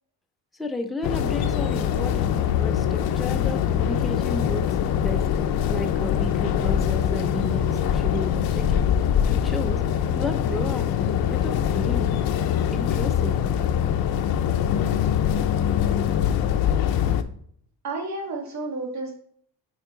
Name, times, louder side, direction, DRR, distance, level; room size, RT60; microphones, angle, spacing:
voice 1, 0.5-5.3 5.7-8.9 9.3-9.8 10.1-12.2 12.7-13.4, left 1 dB, ahead, 4 dB, 0.4 m, -33 dB
sound 1, 1.0-17.2, left 9 dB, 65° left, 0.7 m, -23 dB
voice 2, 17.8-19.2, right 2 dB, 45° right, 1 dB, 1.7 m, -31 dB
8.3 x 4.5 x 3.8 m, 0.63 s
cardioid pair, 170°, 38 cm